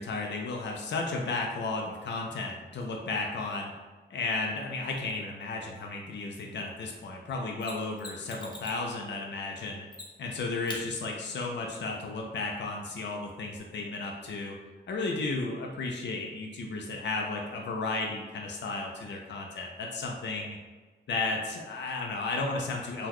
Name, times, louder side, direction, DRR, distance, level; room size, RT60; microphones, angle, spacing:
voice 1, 0.0-3.7 4.1-9.9 10.2-14.6 14.9-20.6 21.1-23.1, left 3 dB, 75° left, 0 dB, 0.4 m, -33 dB
Mechanisms, 7.6-8.9 9.9-10.3 10.7-10.8 13.6-13.7, left 2 dB, 25° left, 0.6 m, -43 dB
3.8 x 2.2 x 3.0 m, 1.3 s
wide cardioid pair, 105°, 19 cm